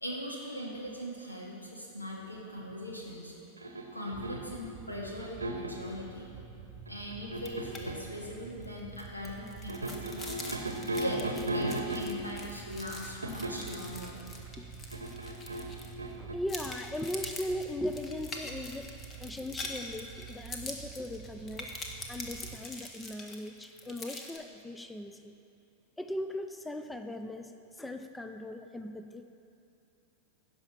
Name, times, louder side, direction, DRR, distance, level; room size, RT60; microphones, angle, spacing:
voice 1, 0.0-3.3 3.9-6.3 6.9-10.3 11.0-11.2 11.5-14.1, equal, 85° left, -2 dB, 2.0 m, -40 dB
sound 1, 3.6-4.6 5.2-5.9 6.9-8.1 9.7-12.4 13.2-13.8 14.9-16.3, right 1 dB, 80° right, 0.9 m, -36 dB
sound 2, 4.1-22.6, right 6 dB, 40° right, 0.9 m, -48 dB
sound 3, 7.4-7.8 8.1-8.3 8.6-16.1 16.5-24.4, left 2 dB, 20° left, 1.2 m, -44 dB
voice 2, 16.2-18.9 19.2-21.7 22.1-25.3 26.0-27.5 27.8-29.2, left 1 dB, 5° left, 7 dB, 0.4 m, -38 dB
16.0 x 5.7 x 5.9 m, 2.7 s
figure-of-eight pair, 90°, 0 cm